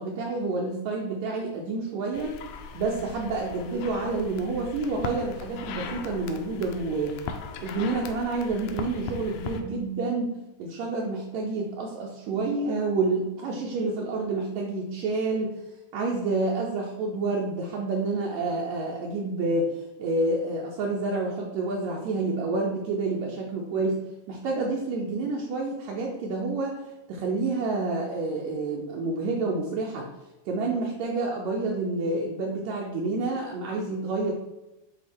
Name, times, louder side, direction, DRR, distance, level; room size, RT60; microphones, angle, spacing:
voice 1, 0.0-2.4 2.7-7.2 7.6-10.3 10.6-15.5 15.9-24.0 24.3-30.1 30.5-34.3, right 3 dB, 75° right, -2 dB, 1.9 m, -28 dB
sound 1, 2.1-9.6, left 6 dB, 80° left, 1.5 m, -39 dB
7.8 x 2.8 x 4.3 m, 0.98 s
omnidirectional pair, 3.5 m